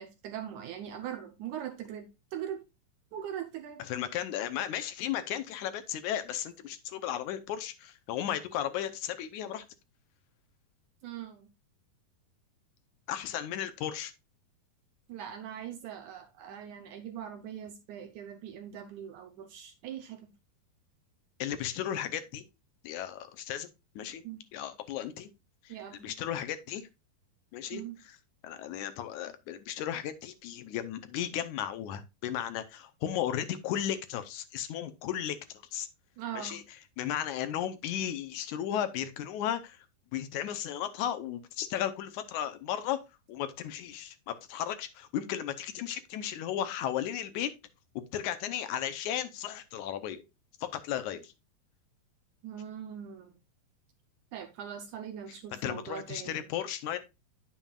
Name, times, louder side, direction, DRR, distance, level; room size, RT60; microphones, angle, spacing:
voice 1, 0.0-2.6 3.1-3.8 11.0-11.5 15.1-20.3 24.2-24.4 25.7-26.2 27.7-28.0 36.2-36.6 52.4-53.4 54.3-56.5, right 9 dB, 75° right, 1.9 m, -41 dB
voice 2, 3.8-9.7 13.1-14.1 21.4-22.4 22.8-23.7 24.0-24.2 24.5-25.3 25.6-26.9 27.5-28.2 28.4-35.4 35.7-35.9 36.3-36.6 37.0-39.9 40.1-43.0 43.3-47.5 48.1-50.2 50.6-51.3 55.5-57.0, left 10 dB, 75° left, 1.8 m, -35 dB
9.4 x 7.1 x 2.3 m
omnidirectional pair, 4.1 m